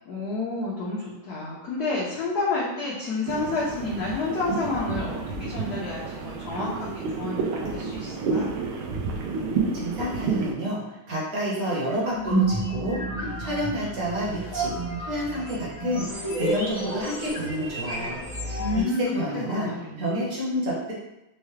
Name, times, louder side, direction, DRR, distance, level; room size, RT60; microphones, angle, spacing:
voice 1, 0.1-8.5 18.6-20.0, left 3 dB, 65° left, -6 dB, 1.0 m, -30 dB
sound 1, 3.3-10.5, right 4 dB, 85° right, 1.4 m, -30 dB
voice 2, 9.7-18.2 18.5-19.7 20.0-20.9, equal, 50° right, -6 dB, 1.3 m, -29 dB
sound 2, 12.1-18.8, right 2 dB, 25° right, 0.8 m, -30 dB
4.6 x 2.1 x 3.1 m, 0.92 s
omnidirectional pair, 2.3 m